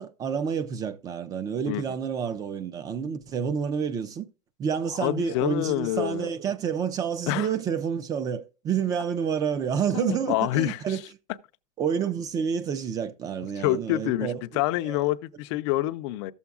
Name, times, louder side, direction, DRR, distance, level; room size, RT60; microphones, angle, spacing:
voice 1, 0.0-4.3 4.6-11.0 11.8-14.4 14.9-15.0, right 7 dB, 15° right, 0.4 m, -29 dB
voice 2, 1.7-2.0 5.0-6.3 7.3-7.5 9.9-11.0 13.6-16.3, left 15 dB, 45° left, 0.5 m, -27 dB
13.5 x 7.1 x 2.3 m
supercardioid pair, 165°, 21 cm